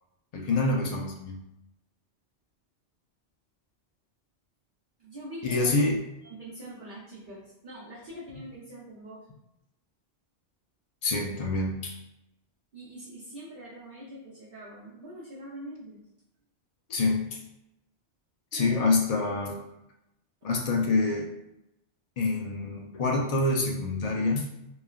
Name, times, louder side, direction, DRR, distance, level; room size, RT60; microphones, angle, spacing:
voice 1, 0.3-1.4 5.4-6.0 11.0-12.0 16.9-17.4 18.5-19.6 20.4-21.3 22.2-24.4, left 3 dB, 55° left, 1 dB, 0.4 m, -26 dB
voice 2, 5.0-5.9 6.2-9.3 12.7-16.0 18.5-18.8 20.4-20.5, right 1 dB, 55° right, -8 dB, 0.8 m, -43 dB
3.2 x 2.3 x 2.3 m, 0.88 s
omnidirectional pair, 1.1 m